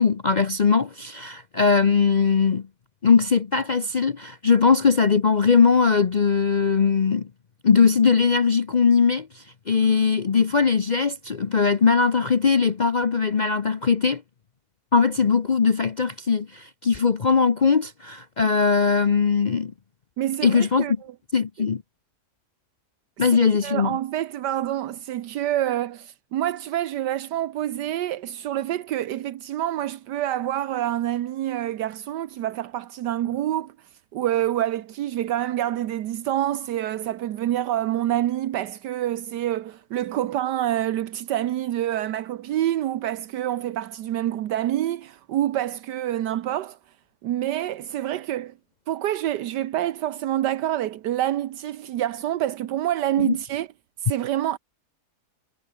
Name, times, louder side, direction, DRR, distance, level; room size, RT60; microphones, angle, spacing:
voice 1, 0.0-2.7 3.0-7.3 7.6-14.2 14.9-19.7 20.4-21.0 21.3-21.8 23.2-24.0 53.2-53.4, left 5 dB, 50° left, 0.5 m, -20 dB
voice 2, 20.2-20.9 23.6-33.7 34.1-46.8 47.2-48.5 48.9-53.7 54.0-54.6, right 12 dB, 80° right, 1.4 m, -27 dB
omnidirectional pair, 1.8 m